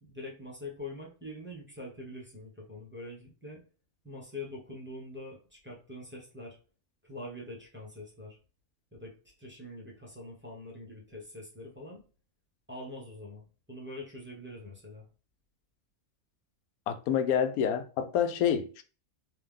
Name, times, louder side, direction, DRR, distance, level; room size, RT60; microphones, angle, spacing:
voice 1, 0.0-3.6 4.0-6.6 7.0-8.4 8.9-12.0 12.7-15.0, left 1 dB, 10° right, 1.0 m, -44 dB
voice 2, 16.9-18.8, left 8 dB, 90° left, 1.1 m, -28 dB
3.4 x 2.9 x 3.6 m
omnidirectional pair, 1.5 m